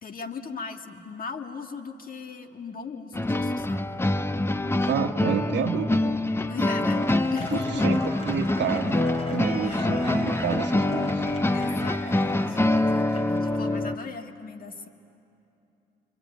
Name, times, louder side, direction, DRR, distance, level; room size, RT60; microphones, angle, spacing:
voice 1, 0.0-4.0 6.4-7.9 9.7-9.9 11.5-14.9, left 5 dB, 45° left, 5 dB, 1.8 m, -38 dB
sound 1, 3.1-14.0, left 2 dB, 10° left, 0.6 m, -25 dB
voice 2, 4.9-6.1 7.5-8.0 8.3-11.3, right 8 dB, 65° right, 0 dB, 1.3 m, -29 dB
Cheering / Applause / Crowd, 6.8-13.6, left 1 dB, 30° left, 5.5 m, -38 dB
25.5 x 24.5 x 9.3 m, 2.7 s
cardioid pair, 90°, 20 cm